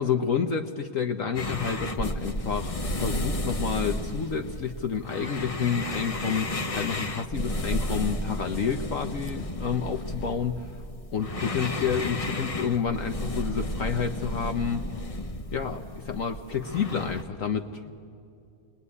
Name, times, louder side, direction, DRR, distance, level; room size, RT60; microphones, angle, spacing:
voice 1, 0.0-10.8 11.1-14.8 15.5-17.9, left 6 dB, 55° left, 7 dB, 1.2 m, -29 dB
sound 1, 1.4-17.2, left 1 dB, 30° left, 0.8 m, -33 dB
28.0 x 21.5 x 9.8 m, 2.5 s
omnidirectional pair, 1.7 m